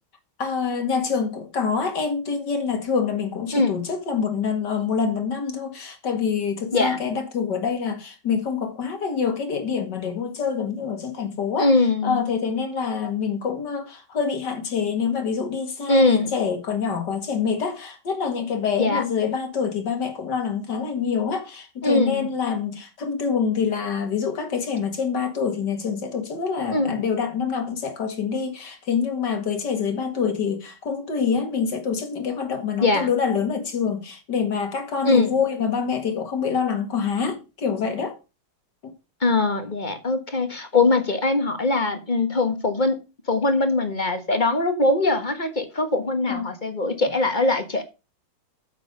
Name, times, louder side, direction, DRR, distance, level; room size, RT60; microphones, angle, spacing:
voice 1, 0.4-11.7 12.0-38.2 38.8-38.9 46.3-46.5, left 6 dB, 55° left, 2.6 m, -26 dB
voice 2, 3.5-3.8 6.7-7.0 11.6-12.2 15.9-16.3 18.8-19.0 21.8-22.3 26.7-27.0 32.8-33.1 35.0-35.3 39.2-43.0 43.3-47.8, left 3 dB, 25° left, 1.3 m, -21 dB
9.2 x 7.3 x 5.3 m
omnidirectional pair, 2.3 m